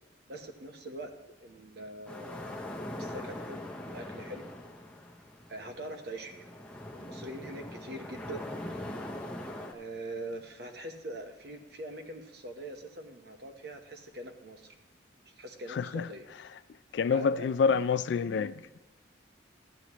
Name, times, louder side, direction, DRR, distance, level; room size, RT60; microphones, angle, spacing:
voice 1, 0.3-1.1 1.4-2.6 3.0-4.4 5.5-6.5 6.9-8.5 9.7-14.7 15.3-16.2 17.0-17.5, right 1 dB, 55° right, 1.0 m, -43 dB
sound 1, 2.1-9.7, left 1 dB, 5° left, 0.7 m, -42 dB
voice 2, 15.7-16.1 16.9-18.5, left 5 dB, 65° left, 0.3 m, -27 dB
13.0 x 9.6 x 3.0 m
head